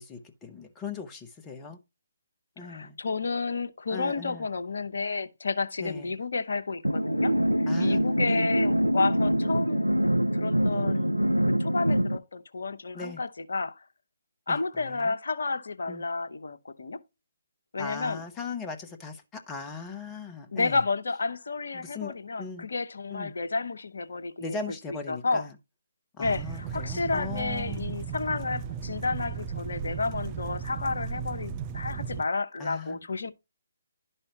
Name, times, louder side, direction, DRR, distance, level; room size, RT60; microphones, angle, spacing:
voice 1, 0.0-1.8 2.6-3.0 3.9-4.4 5.8-6.1 7.7-8.4 10.7-11.2 12.9-13.2 14.5-14.6 14.9-15.1 15.9-16.0 17.8-20.8 21.7-22.7 23.1-23.3 24.4-25.5 26.2-27.9 32.6-33.0, left 4 dB, 15° left, 1.0 m, -39 dB
voice 2, 2.6-7.3 7.6-9.9 10.3-11.1 11.4-13.8 14.5-17.0 17.7-18.2 20.5-24.6 25.1-25.5 26.2-33.3, left 3 dB, 55° left, 0.9 m, -31 dB
sound 1, 6.8-12.2, equal, 85° right, 0.4 m, -25 dB
sound 2, 26.2-32.2, right 7 dB, 20° right, 0.5 m, -35 dB
11.5 x 5.5 x 2.8 m
figure-of-eight pair, 140°, 0 cm